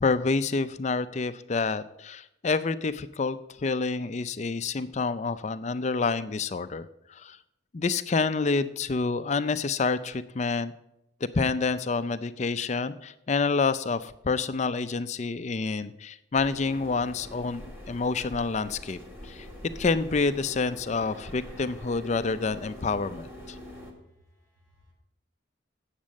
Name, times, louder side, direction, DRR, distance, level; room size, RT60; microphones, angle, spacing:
voice 1, 0.0-7.4 7.7-10.7 11.2-19.5 19.8-23.6, left 4 dB, 35° left, 13 dB, 0.4 m, -28 dB
sound 1, 16.3-23.9, equal, 10° right, 1.7 m, -44 dB
voice 2, 23.7-24.9, left 1 dB, 90° right, -2 dB, 4.6 m, -63 dB
8.8 x 7.4 x 6.3 m, 0.83 s
head